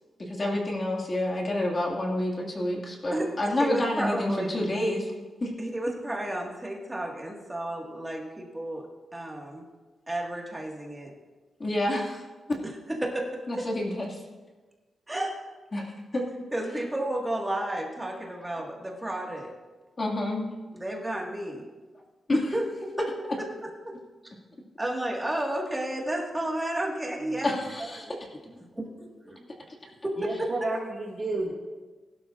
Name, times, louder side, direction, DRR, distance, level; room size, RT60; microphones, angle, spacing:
voice 1, 0.2-5.1 5.4-5.5 11.6-12.2 12.5-12.6 13.5-14.2 15.7-16.5 20.0-20.5 22.3-22.6 27.4-27.5, left 1 dB, 30° left, -1 dB, 2.2 m, -28 dB
voice 2, 3.6-4.6 5.6-9.6 10.1-11.1 12.6-12.7 13.0-13.3 13.5-13.6 15.1-15.3 16.5-19.5 20.7-21.6 22.5-22.6 23.0-23.1 23.4-23.5 24.8-27.6 28.8-29.4 30.0-30.7, right 1 dB, 10° right, -1 dB, 1.8 m, -32 dB
voice 3, 30.2-31.5, right 2 dB, 25° right, -3 dB, 2.0 m, -31 dB
21.0 x 12.0 x 2.5 m, 1.3 s
wide cardioid pair, 165°, 0 cm